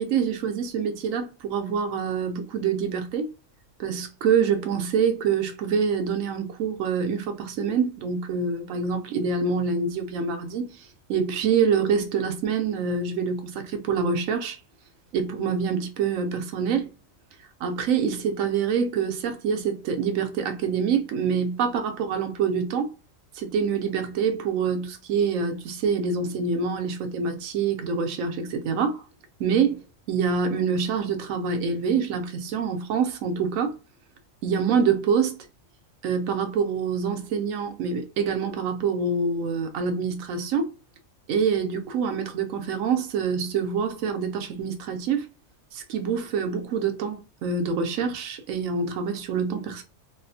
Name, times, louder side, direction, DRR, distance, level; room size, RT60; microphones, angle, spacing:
voice 1, 0.0-3.3 3.8-10.7 11.1-14.6 15.1-16.9 17.6-22.9 23.3-29.0 29.4-29.8 30.1-33.7 34.4-35.4 36.0-40.7 41.3-45.3 45.7-49.8, right 6 dB, 85° right, 1.0 m, -26 dB
2.7 x 2.4 x 2.6 m
omnidirectional pair, 1.4 m